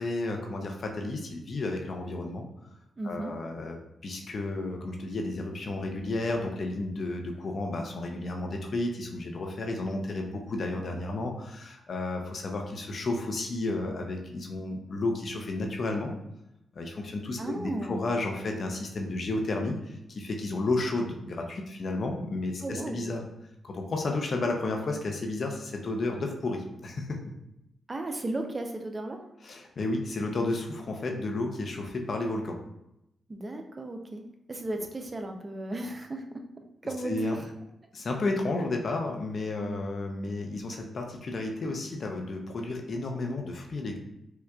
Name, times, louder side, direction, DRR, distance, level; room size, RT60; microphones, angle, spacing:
voice 1, 0.0-2.4 3.0-3.8 4.0-16.1 16.7-23.3 23.6-27.2 29.4-32.6 37.0-37.4 37.9-44.0, left 2 dB, 55° left, 2 dB, 0.6 m, -32 dB
voice 2, 3.0-3.3 17.4-18.1 22.6-23.0 27.9-29.2 33.3-37.5, right 2 dB, 35° right, 4 dB, 0.5 m, -35 dB
4.6 x 2.3 x 2.3 m, 0.85 s
supercardioid pair, 45°, 0 cm